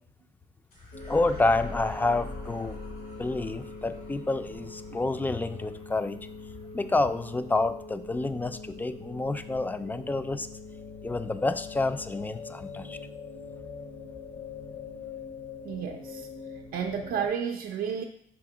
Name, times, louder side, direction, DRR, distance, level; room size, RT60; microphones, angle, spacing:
sound 1, 0.7-9.3, left 2 dB, 90° left, 2.5 m, -46 dB
sound 2, 0.9-17.3, left 4 dB, 55° left, 0.7 m, -43 dB
voice 1, 1.1-2.8 3.2-6.2 6.7-10.5 11.0-13.0, left 2 dB, 10° left, 11 dB, 0.3 m, -28 dB
voice 2, 15.6-16.3 16.7-18.0, right 7 dB, 80° right, 2 dB, 0.5 m, -31 dB
6.1 x 3.5 x 4.8 m, 0.70 s
cardioid pair, 125°, 15 cm